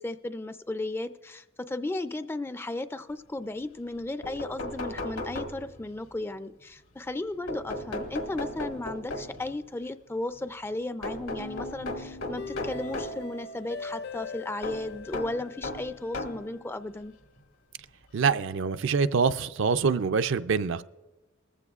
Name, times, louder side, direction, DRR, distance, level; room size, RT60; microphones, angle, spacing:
voice 1, 0.0-17.1, left 2 dB, 10° left, 0.4 m, -35 dB
sound 1, 3.9-4.0 4.2-6.0 7.5-9.5 11.0-13.2 14.6-16.5 17.4-17.5 18.8-18.9 19.2-19.3, left 2 dB, 75° left, 1.6 m, -36 dB
sound 2, 11.4-16.4, left 3 dB, 55° left, 0.6 m, -41 dB
voice 2, 18.1-20.8, right 5 dB, 65° right, 0.5 m, -25 dB
19.5 x 15.0 x 2.4 m
head